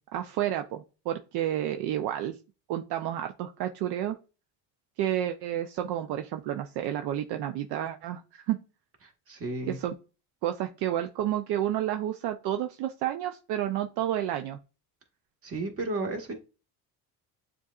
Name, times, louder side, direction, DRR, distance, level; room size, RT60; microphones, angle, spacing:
voice 1, 0.1-2.4 2.7-4.2 5.0-8.6 9.7-9.9 10.4-14.6, right 12 dB, 70° right, 6 dB, 0.5 m, -30 dB
voice 2, 9.3-9.8 15.4-16.3, right 2 dB, 35° right, 3 dB, 1.4 m, -33 dB
7.0 x 2.6 x 2.4 m, 0.32 s
supercardioid pair, 95°, 41 cm